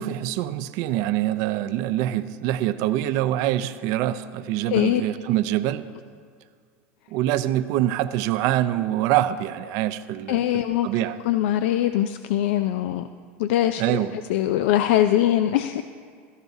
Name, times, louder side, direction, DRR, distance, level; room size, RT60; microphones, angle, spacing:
voice 1, 0.0-5.9 7.1-11.2 13.8-14.1, right 13 dB, 60° right, 12 dB, 0.5 m, -25 dB
voice 2, 4.7-5.0 10.3-10.9 11.2-13.0 13.4-15.8, left 12 dB, 75° left, 10 dB, 0.4 m, -22 dB
16.5 x 14.0 x 2.7 m, 2.1 s
supercardioid pair, 105°, 7 cm